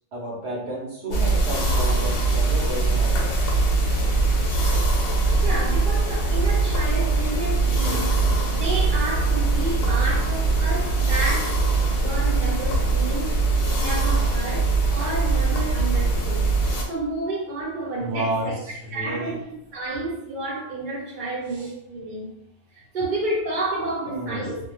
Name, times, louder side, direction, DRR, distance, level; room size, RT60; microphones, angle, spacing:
voice 1, 0.1-3.4 18.0-19.3 21.5-21.7 24.1-24.5, right 1 dB, 65° right, -3 dB, 1.0 m, -31 dB
sound 1, 1.1-16.8, right 3 dB, 60° left, 0.8 m, -22 dB
voice 2, 5.4-8.2 8.5-11.6 12.0-13.4 13.8-16.5 16.9-18.6 18.9-19.4 19.7-22.3 22.9-24.6, right 2 dB, 50° right, -4 dB, 0.8 m, -30 dB
2.5 x 2.3 x 2.9 m, 0.77 s
omnidirectional pair, 1.2 m